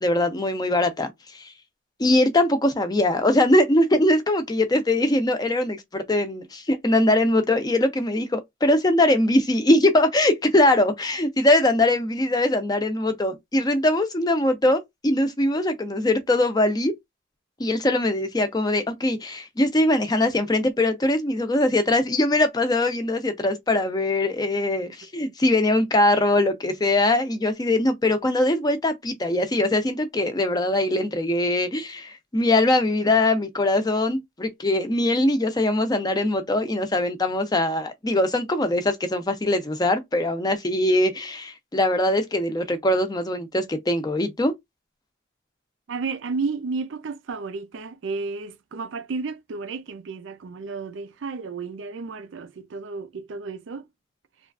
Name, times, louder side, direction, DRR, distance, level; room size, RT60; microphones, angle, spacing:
voice 1, 0.0-1.5 2.0-16.9 17.6-44.5, left 1 dB, 20° left, 0.5 m, -22 dB
voice 2, 24.9-25.3 45.9-53.8, right 4 dB, 65° right, 0.4 m, -32 dB
3.0 x 2.4 x 2.3 m
head